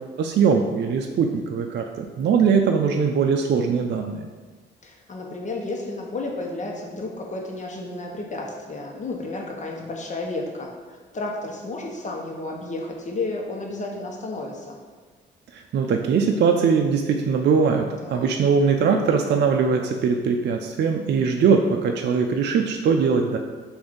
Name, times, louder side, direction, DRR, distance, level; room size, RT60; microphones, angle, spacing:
voice 1, 0.2-4.3 15.5-23.4, right 5 dB, 60° right, 3 dB, 0.5 m, -21 dB
voice 2, 4.8-14.8 18.0-18.3, left 2 dB, 40° left, 0 dB, 1.0 m, -32 dB
6.8 x 2.7 x 5.2 m, 1.4 s
cardioid pair, 90°, 20 cm